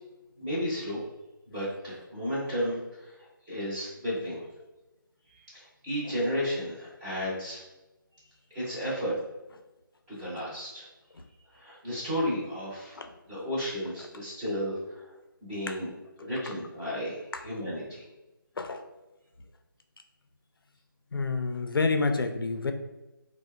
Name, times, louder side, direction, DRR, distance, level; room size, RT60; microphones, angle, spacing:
voice 1, 0.4-1.0 1.5-4.5 5.3-7.6 8.5-9.2 10.1-10.9 11.5-13.0 13.3-15.1 15.4-15.9 16.2-18.0, equal, 10° right, -9 dB, 0.6 m, -33 dB
voice 2, 21.1-22.7, left 4 dB, 80° left, 7 dB, 0.4 m, -28 dB
2.7 x 2.0 x 2.2 m, 1.0 s
figure-of-eight pair, 155°, 12 cm